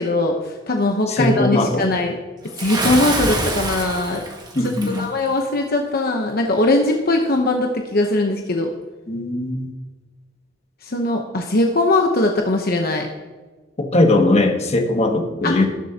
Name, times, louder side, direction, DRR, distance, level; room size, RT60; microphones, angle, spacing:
voice 1, 0.0-2.1 2.6-4.2 4.6-8.7 10.8-13.1 15.4-15.7, left 2 dB, 50° left, 2 dB, 0.9 m, -20 dB
voice 2, 1.1-1.8 4.5-5.1 9.1-9.7 13.8-15.7, left 2 dB, 35° left, 4 dB, 1.3 m, -19 dB
Bathtub (filling or washing) / Splash splatter, 2.6-5.1, right 2 dB, 20° right, 1.8 m, -25 dB
18.5 x 7.6 x 2.9 m, 1.3 s
head